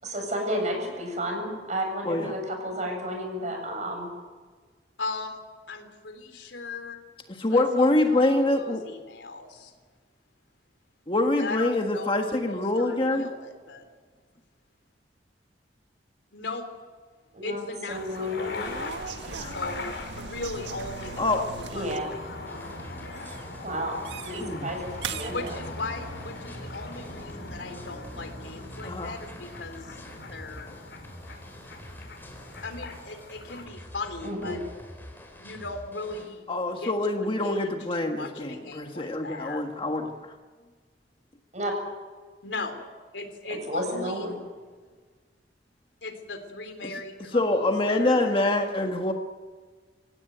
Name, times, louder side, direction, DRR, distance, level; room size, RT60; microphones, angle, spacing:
voice 1, 0.0-4.1 17.3-18.7 19.3-19.4 21.7-22.1 23.6-24.0 24.2-25.5 34.2-34.6 41.5-41.7 43.5-44.4, equal, 45° right, 3 dB, 7.7 m, -32 dB
voice 2, 5.0-5.4 5.7-7.0 7.5-9.7 11.4-13.9 16.3-16.7 17.4-22.1 25.2-30.0 30.3-30.7 32.6-34.6 35.4-36.5 36.8-39.6 42.4-44.3 46.0-48.3, left 3 dB, 90° left, 7 dB, 3.6 m, -38 dB
voice 3, 7.4-8.8 11.1-13.3 19.4-19.5 21.2-21.4 24.3-24.7 28.8-29.1 36.5-40.1 46.8-46.9 47.3-49.1, left 2 dB, 30° left, 4 dB, 1.6 m, -25 dB
sound 1, 17.9-33.7, left 2 dB, 70° left, 5.6 m, -40 dB
sound 2, 18.6-22.1 22.4-22.9 23.1-23.4 24.0-24.4 25.0-25.5, right 5 dB, 80° right, 1.6 m, -39 dB
sound 3, 22.5-36.3, left 1 dB, 10° left, 4.3 m, -47 dB
26.0 x 17.0 x 9.4 m, 1.5 s
head